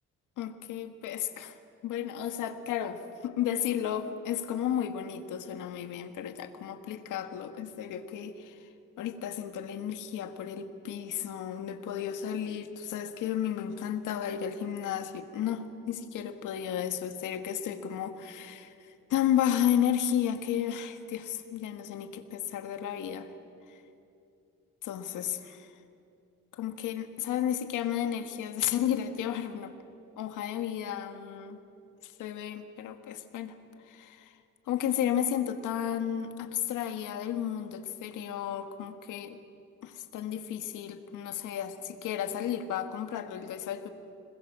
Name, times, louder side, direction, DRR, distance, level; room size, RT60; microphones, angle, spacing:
voice 1, 0.4-1.5 1.8-8.7 9.0-18.7 19.1-23.3 24.8-25.7 26.5-29.7 30.2-31.6 32.0-33.6 33.9-34.3 34.7-39.4 39.8-43.9, left 10 dB, 85° left, 8 dB, 1.7 m, -33 dB
27.0 x 21.0 x 7.5 m, 2.6 s
cardioid pair, 90°, 30 cm